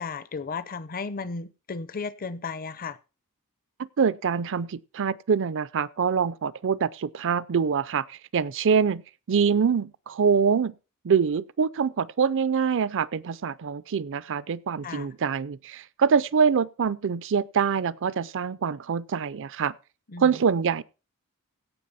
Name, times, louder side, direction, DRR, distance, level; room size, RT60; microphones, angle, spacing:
voice 1, 0.0-3.0 14.8-15.1 20.1-20.3, left 4 dB, 40° left, 0.6 m, -34 dB
voice 2, 4.0-9.0 9.3-10.7 11.0-19.7 20.2-20.8, right 6 dB, 60° right, 0.5 m, -25 dB
17.0 x 5.9 x 4.1 m
head